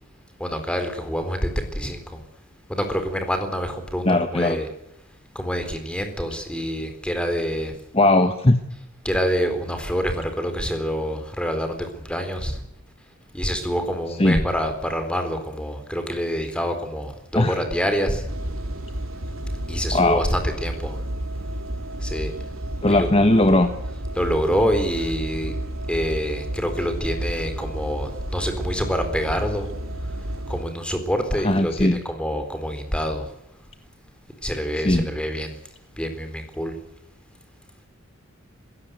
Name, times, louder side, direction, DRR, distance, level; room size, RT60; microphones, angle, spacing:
voice 1, 0.4-2.0 2.7-4.7 5.3-7.7 9.0-12.6 13.3-18.3 19.7-21.0 22.0-22.3 22.9-23.1 24.2-25.5 25.9-29.7 30.5-33.2 34.4-35.5 36.0-36.7, equal, 5° left, 7 dB, 4.0 m, -26 dB
voice 2, 4.0-4.6 7.9-8.6 14.2-14.4 17.3-17.6 19.9-20.3 22.8-23.7 31.4-32.0 34.8-35.1, left 1 dB, 25° left, 8 dB, 1.3 m, -18 dB
sound 1, 18.3-30.6, right 1 dB, 80° right, 2.9 m, -31 dB
27.5 x 16.5 x 8.1 m, 0.83 s
head